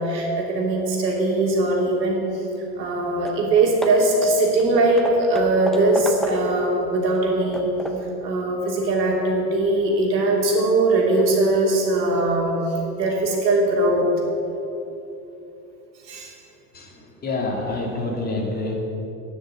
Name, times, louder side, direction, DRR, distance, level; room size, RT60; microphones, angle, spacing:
voice 1, 0.0-2.5 2.8-7.7 8.2-14.1 16.0-16.4, right 2 dB, 85° right, -1 dB, 3.0 m, -21 dB
Hammer / Wood, 2.9-3.0 3.2-3.5 3.8-6.7 7.1-8.2, equal, ahead, 0.5 m, -33 dB
voice 2, 16.7-18.7, left 2 dB, 20° left, -1 dB, 2.3 m, -27 dB
11.5 x 6.5 x 8.5 m, 3.0 s
hypercardioid pair, 125°, 49 cm